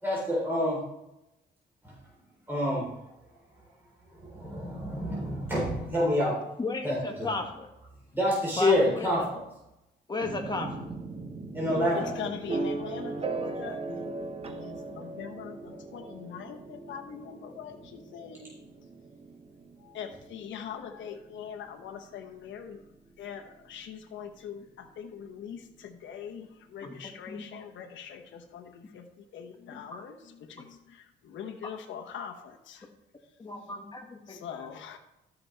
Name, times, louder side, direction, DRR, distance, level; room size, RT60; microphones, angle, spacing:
voice 1, 0.0-0.8 2.5-2.9 4.2-6.4 6.8-7.3 8.1-9.2 11.5-12.1, left 1 dB, 10° right, -6 dB, 3.7 m, -27 dB
voice 2, 6.6-7.7 8.6-9.1 10.1-10.7 26.8-27.0 27.3-27.4 29.9-30.0 33.4-34.4, left 3 dB, 20° left, 3 dB, 1.7 m, -34 dB
sound 1, 10.2-24.0, right 3 dB, 30° right, 0.9 m, -39 dB
voice 3, 11.9-18.8 19.8-22.8 23.2-32.9 33.6-33.7 34.3-35.0, left 8 dB, 70° left, 4 dB, 1.0 m, -42 dB
13.0 x 5.9 x 3.4 m, 0.89 s
cardioid pair, 90°, 20 cm